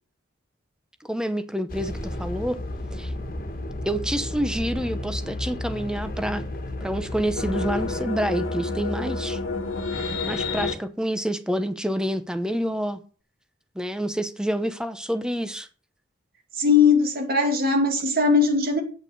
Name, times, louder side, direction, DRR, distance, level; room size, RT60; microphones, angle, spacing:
voice 1, 1.1-2.6 2.9-3.1 3.9-6.4 6.8-9.4 10.3-13.0 13.8-15.7, equal, 5° right, 0.9 m, -28 dB
sound 1, 1.7-8.0, left 1 dB, 45° left, 1.7 m, -33 dB
sound 2, 7.4-10.7, left 3 dB, 90° left, 1.8 m, -29 dB
voice 2, 16.6-18.8, left 4 dB, 50° right, 2.4 m, -20 dB
8.8 x 8.2 x 6.5 m
head